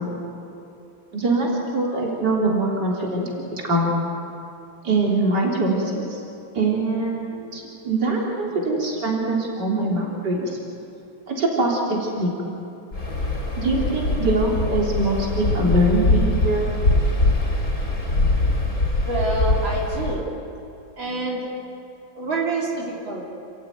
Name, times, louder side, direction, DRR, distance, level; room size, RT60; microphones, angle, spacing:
voice 1, 1.1-3.3 3.6-3.9 4.8-6.2 6.5-10.6 11.3-12.3 13.6-16.7, right 2 dB, 60° right, -2 dB, 4.2 m, -23 dB
Waves surf, 12.9-20.2, left 2 dB, 45° left, 3.3 m, -22 dB
voice 2, 19.1-20.3 21.0-21.5 22.2-23.2, right 2 dB, 80° right, -4 dB, 4.1 m, -26 dB
29.0 x 15.0 x 9.5 m, 2.7 s
omnidirectional pair, 2.1 m